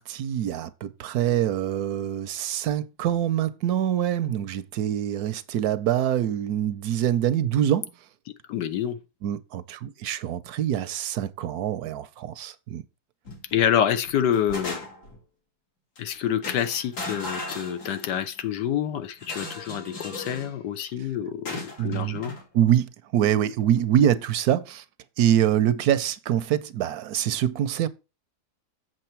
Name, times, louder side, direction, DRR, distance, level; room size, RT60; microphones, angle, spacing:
voice 1, 0.0-7.9 9.2-12.8 21.8-22.2 22.5-24.8 25.2-27.9, right 10 dB, 75° right, 1.0 m, -25 dB
voice 2, 8.5-9.0 13.5-14.8 16.0-22.3, left 9 dB, 85° left, 1.4 m, -27 dB
sound 1, 13.3-13.7 14.1-15.2 16.0-16.1 16.4-18.3 19.2-20.5 21.5-22.4, left 2 dB, 70° left, 2.6 m, -37 dB
7.7 x 6.1 x 4.4 m
omnidirectional pair, 1.8 m